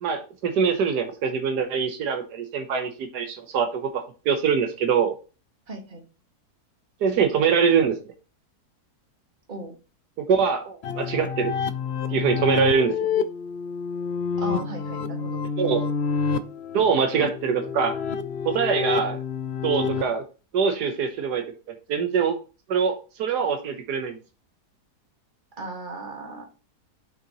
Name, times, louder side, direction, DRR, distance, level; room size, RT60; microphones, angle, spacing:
voice 1, 0.0-5.1 7.0-7.9 10.2-11.5 12.1-12.9 15.6-15.8 16.7-17.9 18.4-19.2 19.6-20.2 20.5-21.4 21.9-22.4 22.7-24.2, right 6 dB, 80° right, 6 dB, 1.5 m, -23 dB
voice 2, 5.7-6.0 9.5-9.8 14.4-15.4 25.6-26.4, right 2 dB, 30° right, 1 dB, 1.9 m, -36 dB
sound 1, 10.8-20.0, left 6 dB, 65° left, 0.6 m, -28 dB
6.6 x 6.5 x 3.0 m, 0.32 s
omnidirectional pair, 1.7 m